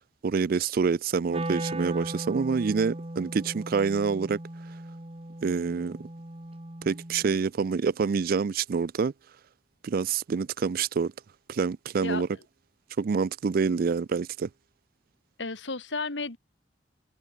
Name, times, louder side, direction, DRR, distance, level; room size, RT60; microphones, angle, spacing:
voice 1, 0.2-4.4 5.4-6.0 6.8-9.1 9.8-11.1 11.5-12.3 13.0-14.5, right 5 dB, 55° right, 0.4 m, -27 dB
Wind instrument woodwind instrument, 1.3-7.4, right 1 dB, 35° right, 1.8 m, -37 dB
voice 2, 15.4-16.4, left 3 dB, 80° left, 2.4 m, -33 dB
head